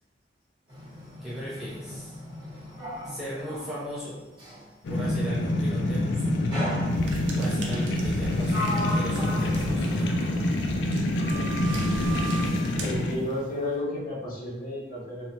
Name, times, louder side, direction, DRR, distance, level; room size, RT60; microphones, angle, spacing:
Sliding door, 0.7-4.7 6.5-7.4 8.1-10.9 11.2-12.5, equal, 25° right, 1.0 m, -37 dB
voice 1, 1.2-2.2 3.0-4.2 4.9-6.4 7.3-10.2, equal, 5° right, -9 dB, 0.5 m, -37 dB
sound 1, 4.8-13.2, left 1 dB, 70° left, 0.3 m, -26 dB
sound 2, 6.9-13.6, right 1 dB, 90° right, 0.5 m, -39 dB
voice 2, 12.8-15.3, left 1 dB, 50° left, -7 dB, 0.8 m, -32 dB
3.1 x 2.1 x 2.7 m, 1.0 s
head